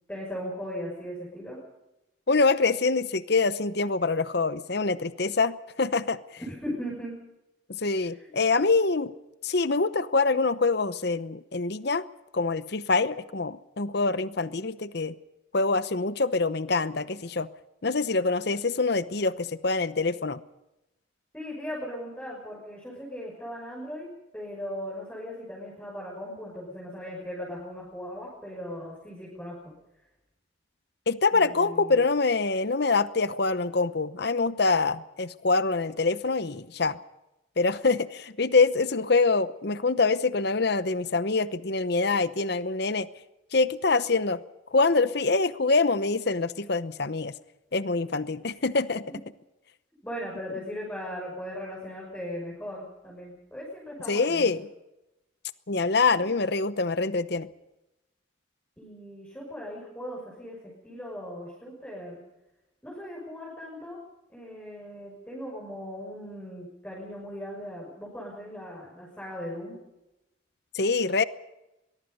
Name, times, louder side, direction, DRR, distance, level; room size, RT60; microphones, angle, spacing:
voice 1, 0.1-1.6 6.5-7.2 8.0-8.3 21.3-24.1 24.3-29.7 31.3-32.0 50.0-54.5 56.1-56.3 58.8-62.2 62.8-64.0 64.3-69.8, equal, 10° left, -5 dB, 6.3 m, -38 dB
voice 2, 2.3-6.2 7.8-9.1 9.4-12.0 12.3-15.1 15.5-17.5 17.8-20.4 31.1-37.0 37.6-43.1 43.5-44.4 44.7-47.3 47.7-49.0 54.1-54.7 55.7-57.5 70.7-71.2, left 3 dB, 55° left, 14 dB, 0.9 m, -25 dB
23.0 x 22.5 x 5.5 m, 0.94 s
head